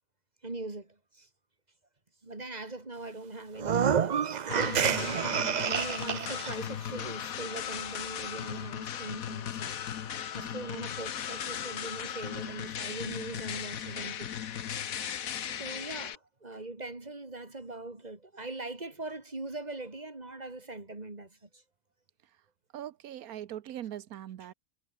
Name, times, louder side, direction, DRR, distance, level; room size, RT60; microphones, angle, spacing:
voice 1, 0.4-1.3 2.2-9.8 10.3-14.3 15.4-21.6, right 2 dB, 30° right, 3.1 m, -41 dB
sound 1, 3.6-6.5, right 7 dB, 45° right, 0.5 m, -28 dB
sound 2, 4.5-16.1, left 9 dB, 75° left, 1.5 m, -37 dB
voice 2, 22.7-24.5, right 11 dB, 85° right, 1.3 m, -41 dB
omnidirectional pair, 1.5 m